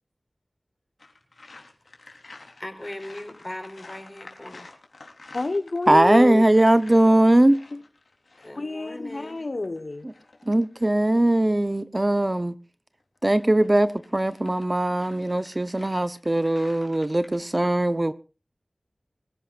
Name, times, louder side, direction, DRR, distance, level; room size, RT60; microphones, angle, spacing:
sound 1, 1.0-10.9 13.0-17.4, left 3 dB, 85° left, 3.5 m, -49 dB
voice 1, 2.6-4.7 8.4-9.4, left 1 dB, 25° left, 4.4 m, -39 dB
voice 2, 5.3-6.4 7.7-7.8 8.6-10.1, left 2 dB, 65° left, 1.2 m, -28 dB
voice 3, 5.9-7.6 10.5-12.5 13.2-18.1, right 1 dB, 30° right, 0.8 m, -20 dB
23.5 x 15.5 x 2.5 m
wide cardioid pair, 60°, 0 cm